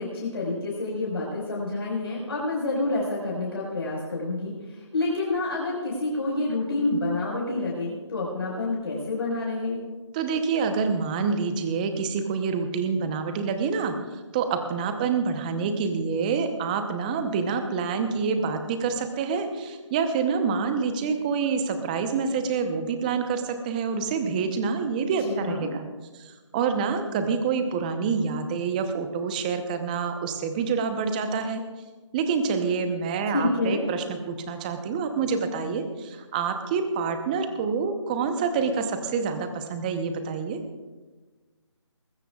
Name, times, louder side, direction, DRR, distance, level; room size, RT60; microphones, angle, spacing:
voice 1, 0.0-9.9 25.2-25.7 33.3-33.9, left 2 dB, 55° left, -4 dB, 5.1 m, -28 dB
voice 2, 10.1-13.9 14.3-25.9 26.1-31.6 32.1-40.6, right 5 dB, 15° right, 7 dB, 0.9 m, -27 dB
20.5 x 15.5 x 2.4 m, 1.3 s
figure-of-eight pair, 160°, 16 cm